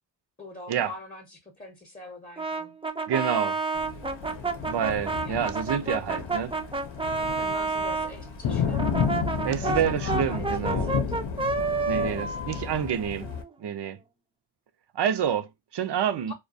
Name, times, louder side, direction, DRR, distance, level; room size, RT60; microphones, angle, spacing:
voice 1, 0.4-2.7 5.2-5.6 7.4-8.9 9.5-11.0 16.3-16.4, left 2 dB, 20° left, 0.7 m, -43 dB
Brass instrument, 2.4-8.1 8.7-13.5, right 3 dB, 15° right, 0.3 m, -30 dB
voice 2, 3.1-3.6 4.7-6.5 9.4-10.9 11.9-13.3 13.6-14.0 14.9-16.3, right 9 dB, 65° right, 0.5 m, -28 dB
Thunder, 3.8-13.4, left 6 dB, 85° left, 0.7 m, -32 dB
2.2 x 2.2 x 2.5 m
wide cardioid pair, 65°, 44 cm